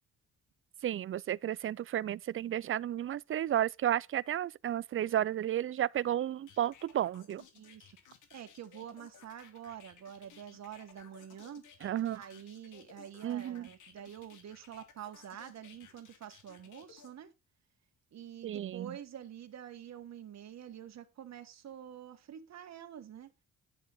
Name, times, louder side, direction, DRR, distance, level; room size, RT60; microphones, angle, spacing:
voice 1, 0.8-7.4 11.8-12.2 13.2-13.7 18.4-19.0, right 11 dB, 45° right, 0.5 m, -32 dB
sound 1, 6.5-17.1, left 8 dB, 80° left, 2.9 m, -58 dB
voice 2, 7.5-8.0 8.3-11.7 12.1-17.3 18.1-23.3, right 10 dB, 60° right, 2.0 m, -47 dB
11.0 x 7.9 x 4.3 m
cardioid pair, 90°, 30 cm